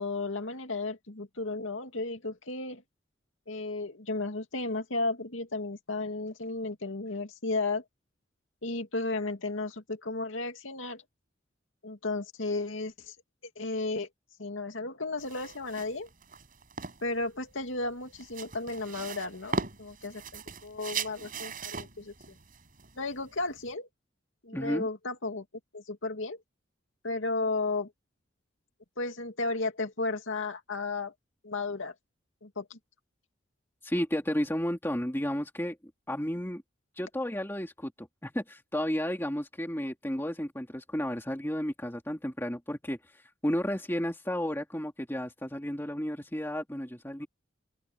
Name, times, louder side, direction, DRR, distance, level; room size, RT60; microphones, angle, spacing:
voice 1, 0.0-2.8 3.5-7.8 8.6-11.0 11.8-13.2 13.6-14.1 14.4-16.1 17.0-22.4 23.0-23.9 24.4-25.4 25.7-26.4 27.0-27.9 29.0-31.1 31.4-31.9 32.4-32.8, left 3 dB, 80° left, 2.5 m, -34 dB
sound 1, 15.2-23.7, right 4 dB, 45° right, 7.1 m, -39 dB
voice 2, 24.5-24.9 33.8-35.8 36.1-36.6 37.0-47.3, equal, 10° left, 2.5 m, -32 dB
open air
head